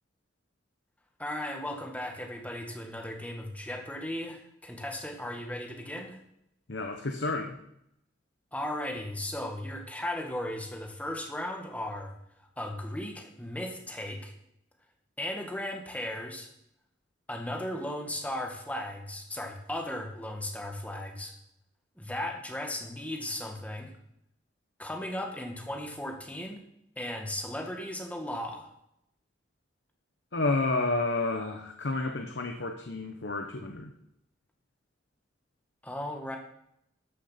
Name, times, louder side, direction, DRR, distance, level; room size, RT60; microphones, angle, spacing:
voice 1, 1.2-6.2 8.5-12.1 12.6-14.3 15.2-16.5 17.3-21.3 22.0-23.9 24.8-26.6 27.0-28.7 35.8-36.4, left 1 dB, 10° left, 2 dB, 1.6 m, -36 dB
voice 2, 6.7-7.6 30.3-33.9, left 2 dB, 75° left, 4 dB, 1.0 m, -30 dB
13.5 x 6.5 x 5.8 m, 0.78 s
head